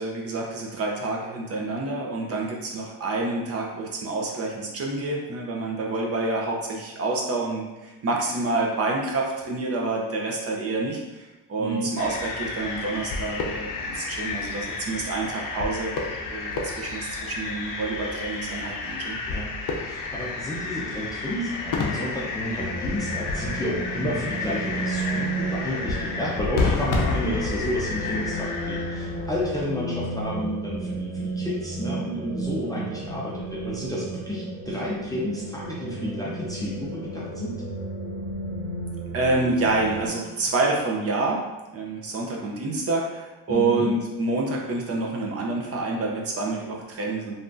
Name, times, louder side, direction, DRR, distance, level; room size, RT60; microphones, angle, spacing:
voice 1, 0.0-15.9 16.3-19.2 39.1-41.4 41.7-47.4, right 3 dB, 35° right, -1 dB, 0.6 m, -28 dB
voice 2, 11.6-11.9 19.3-19.5 19.8-37.6 43.5-43.9, left 1 dB, 10° left, -6 dB, 0.4 m, -31 dB
sound 1, 12.0-29.6, left 3 dB, 55° left, 0.6 m, -30 dB
sound 2, 22.6-40.1, right 2 dB, 70° right, 1.3 m, -33 dB
3.4 x 2.5 x 2.5 m, 1.1 s
cardioid pair, 120°, 39 cm